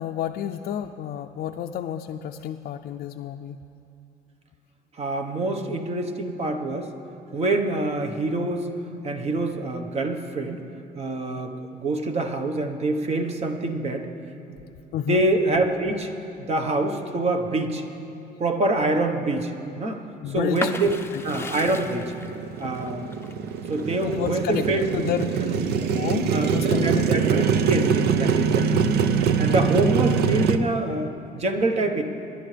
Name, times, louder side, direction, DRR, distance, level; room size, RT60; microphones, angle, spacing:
voice 1, 0.0-3.6 14.9-15.2 20.2-20.7 21.1-21.2 24.0-24.7 24.9-25.3 25.9-27.0 27.3-27.5, left 10 dB, 60° left, 4 dB, 0.5 m, -30 dB
voice 2, 5.0-6.9 7.3-8.7 9.0-10.6 10.9-14.1 14.5-14.6 15.1-16.1 16.4-17.8 18.4-21.0 21.2-22.1 22.6-23.1 23.7-25.1 25.4-25.7 26.3-28.8 29.4-32.0, right 2 dB, 40° right, 5 dB, 1.2 m, -26 dB
sound 1, 20.5-26.2 26.6-27.5, left 3 dB, 15° left, 0.6 m, -37 dB
Motorcycle, 21.2-30.6, right 6 dB, 75° right, 0.7 m, -24 dB
25.0 x 11.0 x 3.4 m, 2.8 s
cardioid pair, 110°, 17 cm